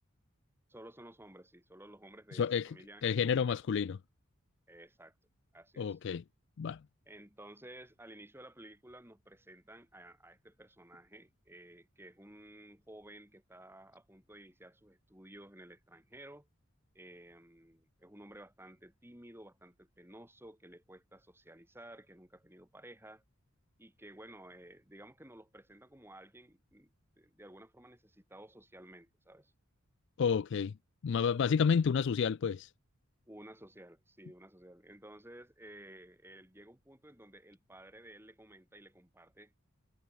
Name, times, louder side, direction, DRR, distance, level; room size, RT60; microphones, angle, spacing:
voice 1, 0.7-3.6 4.7-5.1 5.5-6.0 7.1-16.5 16.9-23.2 23.8-29.5 33.3-39.5, right 1 dB, 10° right, 5.9 m, -54 dB
voice 2, 2.3-2.7 3.0-4.0 5.8-6.2 6.6-6.8 30.2-30.7 31.0-32.7, left 6 dB, 60° left, 0.4 m, -30 dB
head